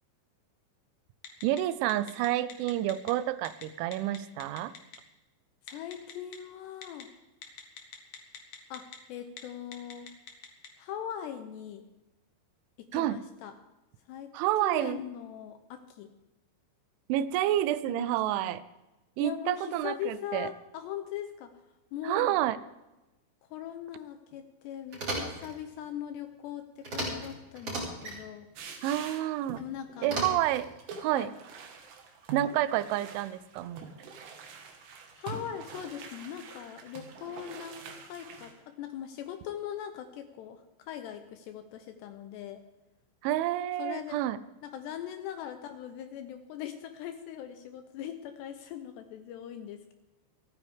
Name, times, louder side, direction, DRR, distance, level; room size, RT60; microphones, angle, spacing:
Telephone, 1.2-1.6 1.9-3.1 3.4-3.6 3.9-5.0 5.7-6.4 6.8-7.0 7.4-9.0 9.3-9.4 9.7-10.7, left 7 dB, 60° left, 2.4 m, -44 dB
voice 1, 1.4-4.7 12.9-13.2 14.3-15.0 17.1-18.6 19.2-20.5 22.0-22.6 28.8-29.6 30.0-30.7 31.0-31.3 32.3-33.9 43.2-44.4, right 13 dB, 85° right, 16 dB, 3.0 m, -29 dB
voice 2, 5.6-7.1 8.7-10.1 10.8-11.9 12.8-13.5 14.1-14.3 14.6-16.1 17.9-18.5 19.2-21.5 21.9-22.4 23.5-28.5 29.6-30.2 31.1-31.3 35.1-42.7 43.8-44.2 44.6-49.9, left 10 dB, 80° left, 8 dB, 2.6 m, -40 dB
sound 1, 24.9-25.5 26.8-27.3 27.5-28.2 30.0-30.7, right 1 dB, 30° right, 4.9 m, -35 dB
sound 2, 28.6-29.6 29.9-30.1 30.6-38.5, right 5 dB, 65° right, 3.6 m, -45 dB
27.5 x 9.4 x 3.6 m, 1.0 s
omnidirectional pair, 5.5 m